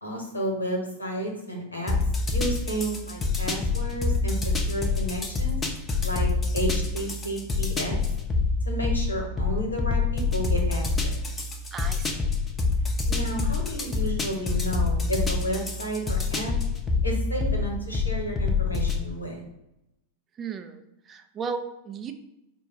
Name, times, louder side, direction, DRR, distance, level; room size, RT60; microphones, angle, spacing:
voice 1, 0.0-1.9 2.3-4.4 4.7-5.6 6.0-8.0 8.6-11.1 13.1-16.5 17.0-19.4, equal, 80° left, 1 dB, 1.0 m, -32 dB
sound 1, 1.9-19.0, left 4 dB, 15° left, 0.6 m, -26 dB
voice 2, 11.7-12.3 20.4-22.1, right 5 dB, 25° right, 7 dB, 0.4 m, -35 dB
4.5 x 2.3 x 4.5 m, 0.88 s
figure-of-eight pair, 90°, 0 cm